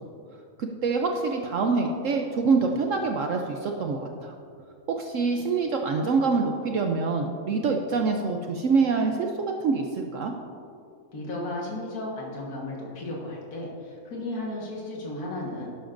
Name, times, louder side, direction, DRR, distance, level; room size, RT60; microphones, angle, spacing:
voice 1, 0.6-4.3 4.9-9.3 9.6-10.3, right 4 dB, 65° right, 3 dB, 0.9 m, -25 dB
voice 2, 11.1-15.7, left 1 dB, 80° left, -3 dB, 2.0 m, -34 dB
12.0 x 11.0 x 2.6 m, 2.5 s
omnidirectional pair, 1.6 m